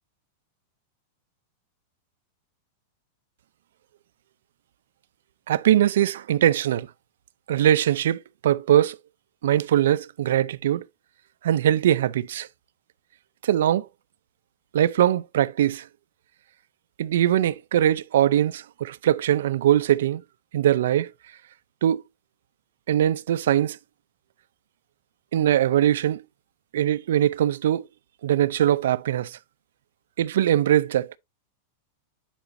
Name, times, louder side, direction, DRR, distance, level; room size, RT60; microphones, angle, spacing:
voice 1, 5.5-6.9 7.5-9.0 9.4-10.9 11.4-12.5 13.4-13.9 14.7-15.9 17.0-20.2 20.5-21.1 21.8-22.0 22.9-23.8 25.3-26.2 26.7-27.8 28.2-29.4 30.2-31.1, right 11 dB, 80° right, 0.4 m, -21 dB
10.0 x 4.9 x 2.6 m
supercardioid pair, 165°, 0 cm